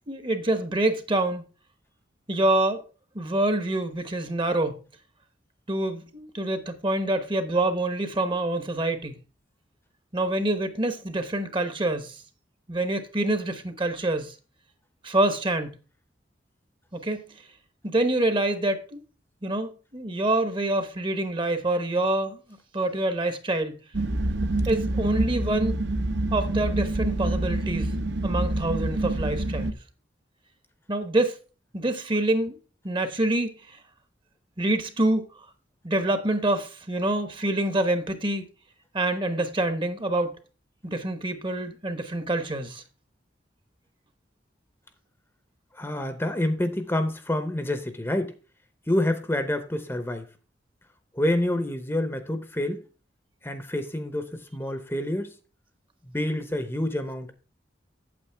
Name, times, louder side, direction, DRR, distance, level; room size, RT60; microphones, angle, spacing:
voice 1, 0.1-1.4 2.3-2.8 3.1-4.8 5.7-9.2 10.1-12.1 12.7-14.3 15.0-15.7 16.9-17.2 17.8-19.0 19.4-22.4 22.7-23.8 24.7-25.8 26.3-27.9 28.2-29.7 30.9-31.4 31.7-32.6 32.8-33.5 34.6-35.3 35.8-38.5 38.9-40.3 40.8-42.8, right 1 dB, 25° right, 0.9 m, -26 dB
sound 1, 23.9-29.7, right 2 dB, 70° right, 0.8 m, -27 dB
voice 2, 45.7-48.3 48.9-50.3 51.1-52.8 53.4-55.3 56.0-57.3, left 1 dB, 15° left, 0.8 m, -27 dB
8.6 x 8.0 x 3.4 m
head